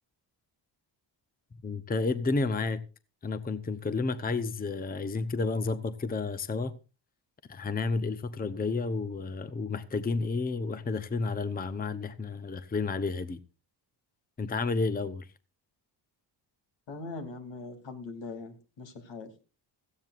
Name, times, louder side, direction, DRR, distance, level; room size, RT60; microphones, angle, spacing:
voice 1, 1.6-2.8 3.2-6.7 7.5-13.4 14.4-15.3, left 4 dB, 20° left, 0.8 m, -31 dB
voice 2, 16.9-19.3, left 3 dB, 75° left, 3.1 m, -41 dB
16.5 x 15.0 x 2.5 m
cardioid pair, 125°, 44 cm